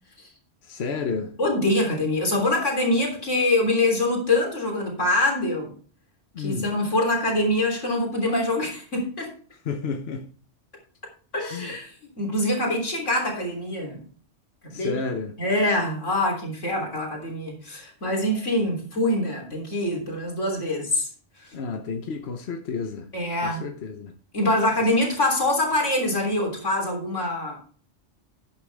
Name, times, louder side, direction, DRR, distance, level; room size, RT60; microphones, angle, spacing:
voice 1, 0.6-1.3 6.3-6.7 9.6-10.3 11.5-11.7 14.7-15.3 21.5-23.1 23.4-24.1, left 5 dB, 60° left, 1.2 m, -31 dB
voice 2, 1.4-5.7 6.4-9.3 11.3-14.0 14.6-15.0 15.4-21.1 21.4-21.5 23.1-23.6 24.3-27.6, left 1 dB, 85° left, 3.8 m, -24 dB
11.5 x 8.9 x 3.5 m
omnidirectional pair, 1.2 m